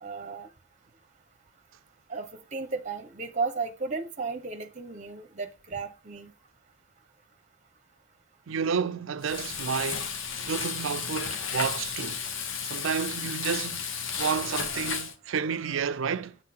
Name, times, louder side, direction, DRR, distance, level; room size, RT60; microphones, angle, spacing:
voice 1, 0.0-0.5 2.1-6.3, right 4 dB, 35° right, 1.0 m, -34 dB
voice 2, 8.5-10.1 10.5-12.2 12.6-13.9 14.2-16.4, right 6 dB, 75° right, 0.5 m, -30 dB
Frying (food), 9.2-15.1, left 6 dB, 70° left, 1.0 m, -33 dB
8.0 x 3.8 x 6.0 m
head